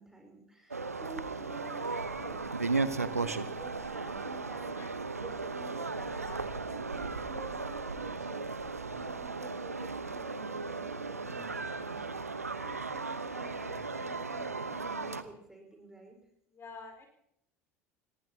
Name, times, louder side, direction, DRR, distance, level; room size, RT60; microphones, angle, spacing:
voice 1, 0.0-16.2, right 2 dB, 5° right, 2 dB, 4.6 m, -51 dB
sound 1, 0.7-15.2, right 3 dB, 85° right, 0.8 m, -36 dB
voice 2, 12.5-12.9 16.5-17.1, left 4 dB, 30° left, 4 dB, 4.3 m, -49 dB
26.5 x 19.5 x 2.8 m, 0.76 s
figure-of-eight pair, 70°, 8 cm